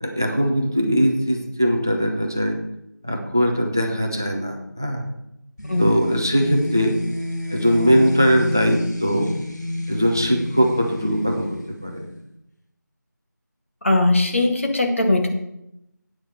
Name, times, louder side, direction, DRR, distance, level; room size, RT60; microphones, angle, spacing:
voice 1, 0.0-2.6 3.0-5.0 5.8-7.0 7.5-9.3 9.9-12.1, equal, 10° right, 3 dB, 0.5 m, -20 dB
sound 1, 5.6-12.2, left 1 dB, 65° left, 2.2 m, -30 dB
voice 2, 13.8-15.3, left 2 dB, 40° left, 4 dB, 1.5 m, -19 dB
8.7 x 7.7 x 6.7 m, 0.83 s
figure-of-eight pair, 170°, 10 cm